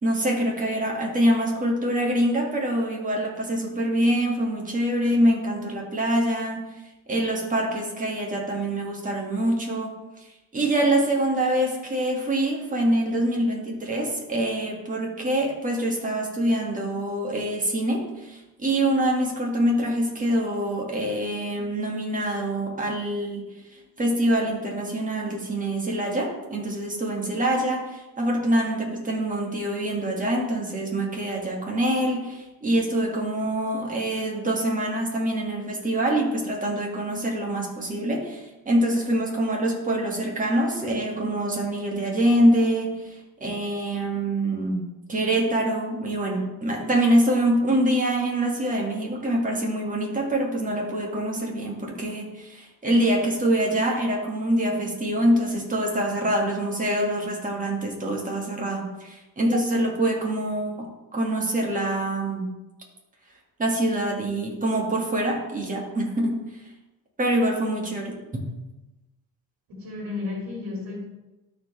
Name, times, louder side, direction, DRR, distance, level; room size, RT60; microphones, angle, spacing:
voice 1, 0.0-6.6 7.1-10.3 10.5-44.8 45.1-60.9 61.1-62.5 63.6-66.4 67.2-68.2, right 1 dB, 20° right, -1 dB, 2.1 m, -25 dB
voice 2, 69.7-71.1, left 3 dB, 65° right, -2 dB, 2.8 m, -33 dB
13.0 x 4.7 x 3.4 m, 1.0 s
cardioid pair, 110°, 37 cm